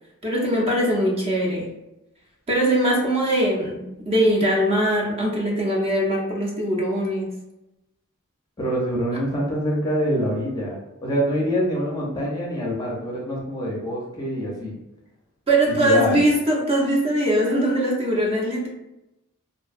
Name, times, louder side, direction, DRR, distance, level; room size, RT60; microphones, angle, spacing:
voice 1, 0.2-1.7 2.5-7.3 15.5-18.7, right 1 dB, 25° right, -2 dB, 0.5 m, -21 dB
voice 2, 8.6-14.8 15.8-16.2, equal, 20° left, -3 dB, 0.5 m, -25 dB
2.6 x 2.2 x 2.4 m, 0.92 s
head